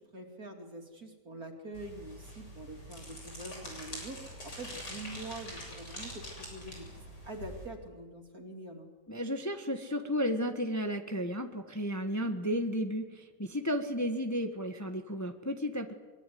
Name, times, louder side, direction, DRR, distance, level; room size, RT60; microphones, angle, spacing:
voice 1, 0.0-8.9, right 2 dB, 55° right, 3 dB, 3.5 m, -45 dB
sound 1, 1.7-7.7, left 1 dB, 80° left, 8.4 m, -45 dB
voice 2, 9.1-15.9, equal, 10° left, 5 dB, 1.4 m, -33 dB
24.0 x 23.0 x 9.5 m, 1.4 s
omnidirectional pair, 1.8 m